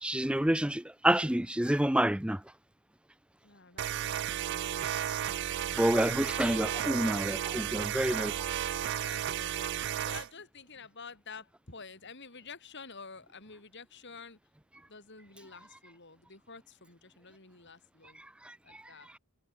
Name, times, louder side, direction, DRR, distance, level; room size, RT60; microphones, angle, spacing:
voice 1, 0.0-2.4 5.8-8.3 18.4-18.8, right 1 dB, 5° right, 0.6 m, -28 dB
voice 2, 3.4-4.6 5.6-6.3 8.6-14.4 14.9-18.2 18.6-19.1, left 4 dB, 55° left, 4.4 m, -50 dB
sound 1, 3.8-10.3, right 10 dB, 55° right, 0.4 m, -33 dB
head